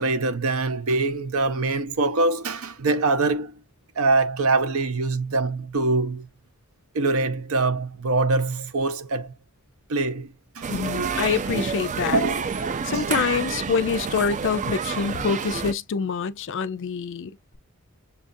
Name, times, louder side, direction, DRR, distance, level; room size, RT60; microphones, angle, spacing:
voice 1, 0.0-3.5 4.0-6.3 6.9-9.3 9.9-10.7 12.1-12.4 12.9-13.0, right 3 dB, 70° right, 0.7 m, -24 dB
sound 1, 10.6-15.7, right 5 dB, 35° right, 0.4 m, -29 dB
voice 2, 10.7-12.2 12.8-17.6, left 6 dB, 60° left, 0.4 m, -26 dB
6.7 x 2.4 x 2.6 m
head